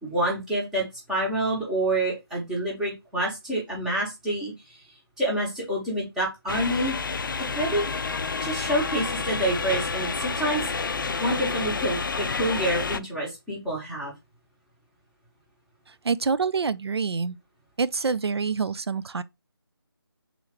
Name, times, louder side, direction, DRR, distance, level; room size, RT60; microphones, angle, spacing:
voice 1, 0.0-4.8 5.2-7.0 7.5-7.9 8.4-14.1, right 1 dB, 5° right, 0.9 m, -28 dB
sound 1, 6.5-13.0, left 4 dB, 55° left, 0.4 m, -29 dB
voice 2, 16.0-17.4 17.8-19.2, right 5 dB, 85° right, 0.4 m, -26 dB
3.7 x 3.0 x 3.2 m
figure-of-eight pair, 160°, 13 cm